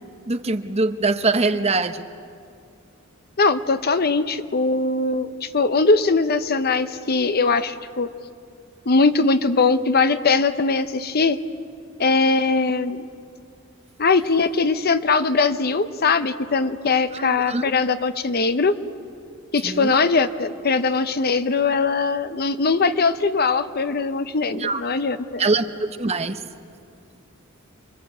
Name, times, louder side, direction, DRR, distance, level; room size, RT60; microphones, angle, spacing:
voice 1, 0.3-2.0 17.1-17.7 19.6-19.9 24.6-24.8 25.4-26.4, right 3 dB, 30° right, 9 dB, 0.9 m, -23 dB
voice 2, 3.4-8.1 8.9-11.4 12.0-13.1 14.0-18.7 19.5-25.4, left 4 dB, 50° left, 11 dB, 0.8 m, -21 dB
28.5 x 22.5 x 7.9 m, 2.4 s
head